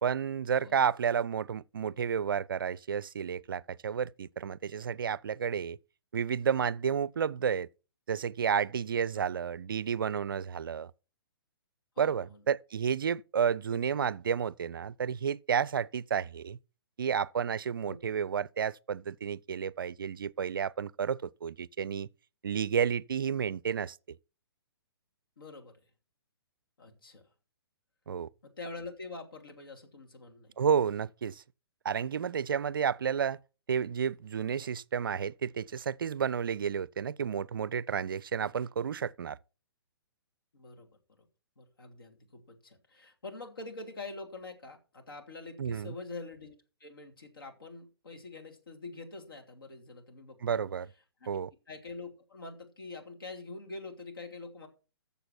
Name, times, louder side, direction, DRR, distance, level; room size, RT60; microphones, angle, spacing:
voice 1, 0.0-5.8 6.1-7.7 8.1-10.9 12.0-16.6 17.0-22.1 22.4-24.0 28.1-28.3 30.6-31.4 31.8-33.4 33.7-39.4 45.6-45.9 50.4-50.9 51.3-51.5, right 7 dB, 55° right, 0.4 m, -31 dB
voice 2, 12.0-12.4 17.9-18.0 25.4-25.8 26.8-27.2 28.4-30.5 40.5-40.9 41.6-46.5 46.8-50.6 51.2-51.3 51.7-54.7, left 3 dB, 60° left, 2.7 m, -45 dB
13.5 x 7.0 x 4.4 m
figure-of-eight pair, 125°, 13 cm